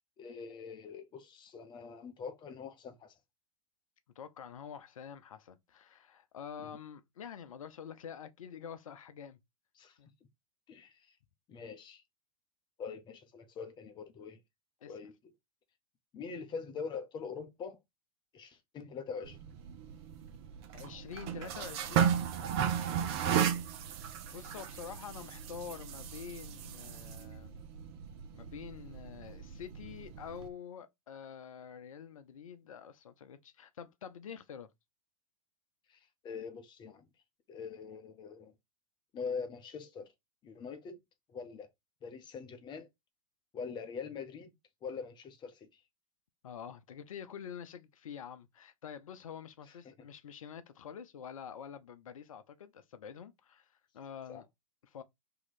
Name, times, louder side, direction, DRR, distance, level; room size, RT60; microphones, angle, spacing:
voice 1, 0.2-3.1 6.6-6.7 9.8-10.0 10.7-10.9 11.5-12.0 12.8-14.4 14.9-15.1 16.1-17.8 18.3-19.4 23.2-23.4 35.9-37.1 37.5-38.5 39.1-40.1 40.4-41.0 41.3-41.7 42.0-42.9 43.5-44.5 44.8-45.8 49.8-49.9 54.3-54.4, left 5 dB, 25° left, 0.8 m, -43 dB
voice 2, 4.2-9.4 10.0-10.1 14.8-14.9 20.7-22.1 24.3-27.6 28.3-34.7 46.4-53.7 53.9-54.4 54.8-55.0, left 7 dB, 75° left, 0.6 m, -47 dB
sound 1, 19.2-30.5, right 9 dB, 50° right, 0.7 m, -35 dB
3.0 x 2.9 x 3.9 m
hypercardioid pair, 100°, 18 cm